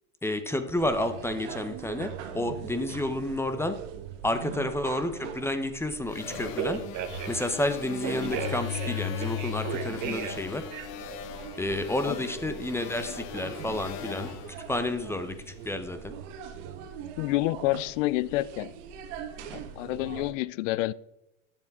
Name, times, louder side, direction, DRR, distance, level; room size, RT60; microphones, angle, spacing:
voice 1, 0.2-3.8 4.2-6.8 7.3-10.7 11.6-14.3 14.7-16.1, left 1 dB, 5° left, 9 dB, 0.8 m, -30 dB
sound 1, 0.8-20.3, right 8 dB, 70° right, 1.4 m, -42 dB
sound 2, 6.1-15.5, left 10 dB, 55° left, 1.0 m, -38 dB
Telephone, 6.3-7.4 8.0-10.4 10.7-11.1, right 9 dB, 50° right, 1.2 m, -35 dB
voice 2, 17.2-18.7 19.5-20.9, left 18 dB, 75° left, 21 dB, 0.5 m, -28 dB
11.0 x 7.3 x 3.6 m, 0.86 s
supercardioid pair, 120°, 38 cm